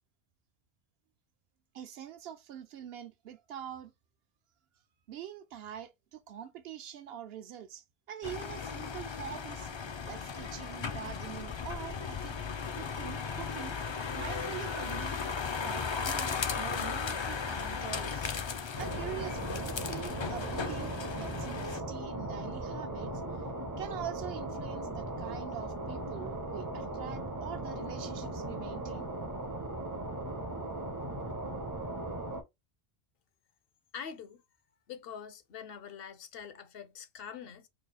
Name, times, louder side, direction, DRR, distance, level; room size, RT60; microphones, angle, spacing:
voice 1, 1.7-3.9 5.1-12.4 12.7-18.3 18.8-23.1 23.8-29.1, right 10 dB, 75° right, 0.8 m, -44 dB
sound 1, 8.2-21.8, left 5 dB, 50° left, 0.3 m, -36 dB
sound 2, 18.8-32.4, right 1 dB, 25° right, 0.4 m, -38 dB
voice 2, 33.9-34.4 34.9-37.7, left 7 dB, 70° left, 0.8 m, -44 dB
3.4 x 2.3 x 3.9 m
omnidirectional pair, 1.0 m